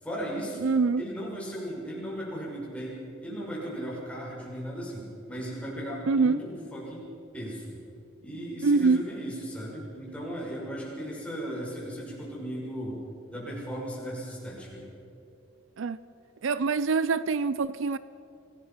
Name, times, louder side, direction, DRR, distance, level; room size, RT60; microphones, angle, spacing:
voice 1, 0.0-0.7 1.0-7.1 7.3-7.7 8.2-13.0 13.3-14.8, equal, 5° left, 6.3 m, -36 dB
voice 2, 0.6-1.0 6.1-6.4 8.6-9.0 15.8-16.0 16.4-18.0, right 4 dB, 65° right, 0.5 m, -24 dB
26.5 x 18.0 x 5.8 m
head